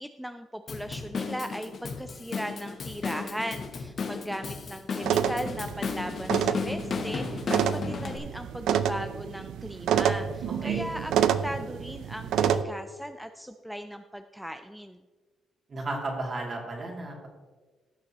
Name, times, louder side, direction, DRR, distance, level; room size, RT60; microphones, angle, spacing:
voice 1, 0.0-11.1 11.4-15.0, equal, ahead, 7 dB, 0.4 m, -38 dB
Drum kit / Drum, 0.7-8.2, left 5 dB, 50° left, 1.0 m, -34 dB
sound 1, 5.0-12.6, right 9 dB, 80° right, 0.4 m, -28 dB
voice 2, 10.5-10.8 15.7-17.3, right 2 dB, 40° right, 0 dB, 2.6 m, -34 dB
16.5 x 6.9 x 3.0 m, 1.3 s
cardioid pair, 90°, 0 cm